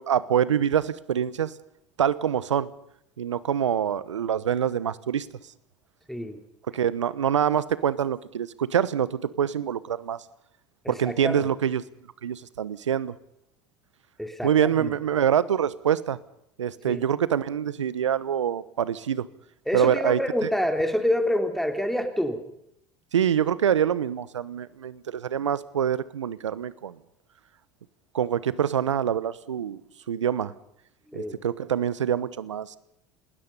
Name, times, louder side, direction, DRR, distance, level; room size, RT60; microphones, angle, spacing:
voice 1, 0.0-1.5 2.0-2.7 3.2-5.3 6.7-10.2 10.9-11.8 12.2-13.1 14.4-16.2 16.6-19.3 19.7-20.2 23.1-26.9 28.1-29.8 30.1-30.5 31.1-32.8, right 9 dB, 85° right, 18 dB, 1.1 m, -25 dB
voice 2, 10.8-11.5 14.2-14.5 14.8-14.9 16.9-17.0 19.7-22.4 31.1-31.3, left 1 dB, ahead, 5 dB, 3.2 m, -27 dB
28.5 x 20.0 x 5.5 m, 0.78 s
hypercardioid pair, 75°, 15 cm